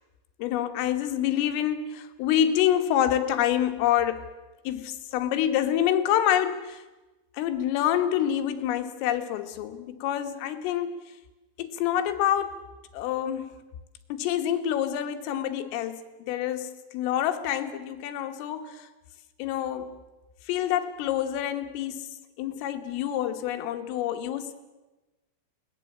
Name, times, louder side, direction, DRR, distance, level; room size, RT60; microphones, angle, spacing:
voice 1, 0.4-4.3 4.7-6.8 7.4-11.0 11.6-12.6 12.9-13.6 14.1-16.0 16.3-18.9 19.4-20.0 20.5-24.5, left 11 dB, 85° left, 7 dB, 4.0 m, -27 dB
22.0 x 18.5 x 8.5 m, 1.1 s
omnidirectional pair, 5.7 m